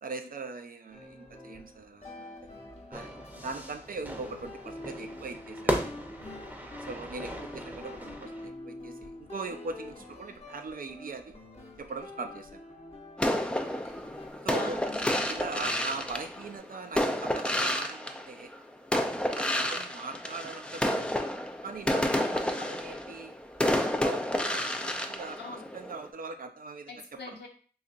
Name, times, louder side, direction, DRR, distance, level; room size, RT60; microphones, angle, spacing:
voice 1, 0.0-2.4 2.9-6.0 6.9-11.3 11.8-12.6 14.4-14.8 15.2-18.5 18.9-21.1 21.6-23.3 24.0-26.9 27.3-27.4, right 4 dB, 55° right, 6 dB, 0.5 m, -41 dB
sound 1, 0.9-16.6, left 2 dB, 35° left, 1.0 m, -47 dB
Fire / Fireworks, 2.9-8.5, equal, 10° right, 0.8 m, -37 dB
sound 2, 13.2-18.6 18.9-26.1, left 1 dB, 5° left, 0.5 m, -30 dB
voice 2, 14.5-15.2 21.9-22.2 25.4-25.7 26.9-27.5, left 3 dB, 85° left, 1 dB, 0.8 m, -43 dB
3.9 x 2.8 x 2.5 m, 0.42 s
cardioid pair, 40°, 17 cm